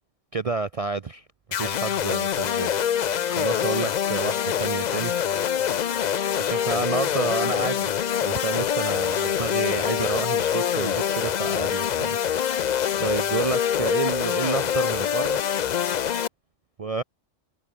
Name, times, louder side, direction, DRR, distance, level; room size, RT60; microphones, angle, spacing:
voice 1, 0.3-5.1 6.4-12.7 13.0-15.4 16.8-17.0, right 4 dB, 45° right, 0.5 m, -30 dB
sound 1, 1.5-16.3, left 9 dB, 55° left, 0.5 m, -25 dB
omnidirectional pair, 1.3 m